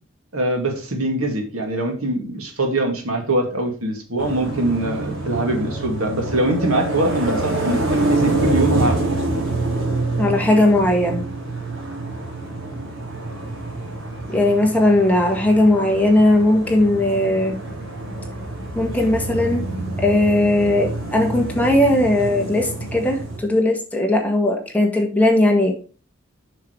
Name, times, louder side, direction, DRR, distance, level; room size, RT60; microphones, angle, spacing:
voice 1, 0.3-9.0, right 1 dB, 85° right, 3 dB, 2.3 m, -23 dB
sound 1, 4.2-23.4, right 2 dB, 65° right, 3.2 m, -26 dB
voice 2, 10.2-11.3 14.3-17.6 18.8-19.7 20.0-25.7, left 1 dB, 5° left, 1 dB, 1.7 m, -18 dB
7.1 x 6.0 x 4.8 m, 0.37 s
head